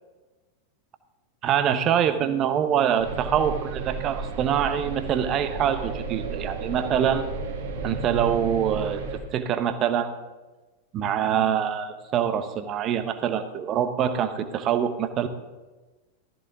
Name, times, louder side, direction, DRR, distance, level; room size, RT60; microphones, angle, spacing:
voice 1, 1.4-7.3 7.8-10.2 10.9-15.3, right 9 dB, 35° right, 9 dB, 1.2 m, -25 dB
sound 1, 3.0-9.2, right 4 dB, 55° right, 2.3 m, -33 dB
15.5 x 13.5 x 4.0 m, 1.2 s
figure-of-eight pair, 90°, 0 cm